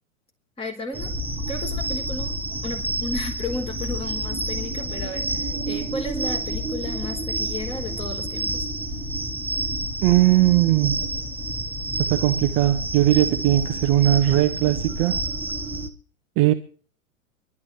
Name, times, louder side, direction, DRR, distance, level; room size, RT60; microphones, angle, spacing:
voice 1, 0.6-1.1 1.5-2.4 2.6-8.7, left 2 dB, 15° left, 3.9 m, -33 dB
sound 1, 0.9-15.9, right 1 dB, 5° right, 1.0 m, -29 dB
voice 2, 10.0-11.0 12.0-15.2 16.4-16.5, right 14 dB, 30° right, 0.8 m, -19 dB
24.0 x 12.0 x 3.2 m
hypercardioid pair, 115°, 41 cm